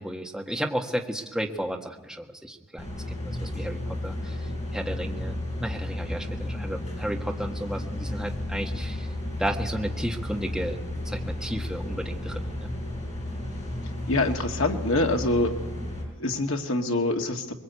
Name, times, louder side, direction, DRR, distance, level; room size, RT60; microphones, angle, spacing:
voice 1, 0.0-9.1 9.4-10.8 11.0-12.7, equal, ahead, 0 dB, 1.6 m, -33 dB
sound 1, 2.8-16.0, left 1 dB, 30° left, 5.9 m, -33 dB
voice 2, 14.1-15.5 16.2-17.5, left 2 dB, 65° left, 2 dB, 2.0 m, -25 dB
22.5 x 22.5 x 8.3 m, 1.2 s
head